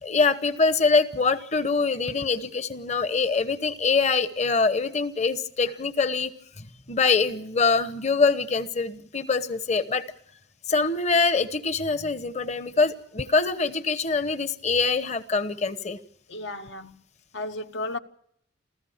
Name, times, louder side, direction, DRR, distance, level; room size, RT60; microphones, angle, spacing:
voice 1, 0.0-6.3 6.6-10.0 10.7-16.0, left 4 dB, 35° left, 1.0 m, -24 dB
voice 2, 16.3-16.9 17.3-18.0, left 2 dB, 70° left, 0.9 m, -33 dB
28.5 x 14.5 x 7.3 m
head